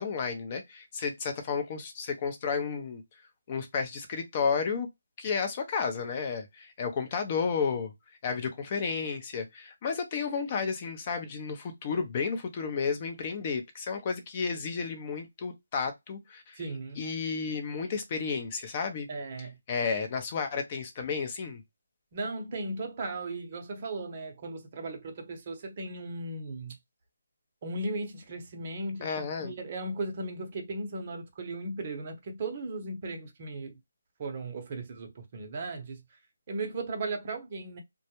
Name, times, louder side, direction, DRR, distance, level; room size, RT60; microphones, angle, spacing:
voice 1, 0.0-3.0 3.5-4.9 5.2-7.9 8.2-16.6 17.0-19.1 19.7-21.6 29.0-29.5, left 5 dB, 30° left, 0.6 m, -32 dB
voice 2, 16.6-17.1 19.1-19.6 22.1-26.8 27.6-33.8 34.2-36.0 36.5-37.8, right 2 dB, 35° right, 0.7 m, -36 dB
2.2 x 2.1 x 2.9 m
figure-of-eight pair, 165°, 0 cm